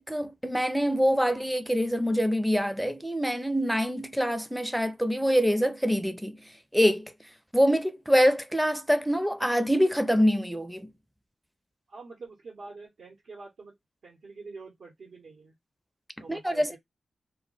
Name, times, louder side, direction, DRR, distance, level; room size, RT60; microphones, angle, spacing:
voice 1, 0.0-6.4 6.7-7.1 7.5-10.9 16.3-16.8, equal, ahead, 0.4 m, -25 dB
voice 2, 11.9-13.8 14.0-15.5 16.2-16.8, right 3 dB, 80° right, 0.9 m, -46 dB
2.2 x 2.1 x 3.7 m
cardioid pair, 75°, 0 cm